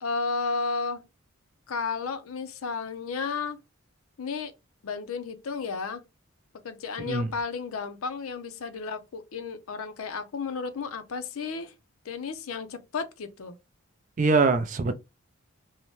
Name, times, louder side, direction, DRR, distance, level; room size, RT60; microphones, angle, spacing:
voice 1, 0.0-1.0 1.7-3.6 4.2-4.5 4.8-6.0 6.6-11.7 12.0-13.6, left 4 dB, 80° left, 0.5 m, -33 dB
voice 2, 14.2-14.9, right 3 dB, 35° right, 0.3 m, -23 dB
2.7 x 2.1 x 3.0 m
head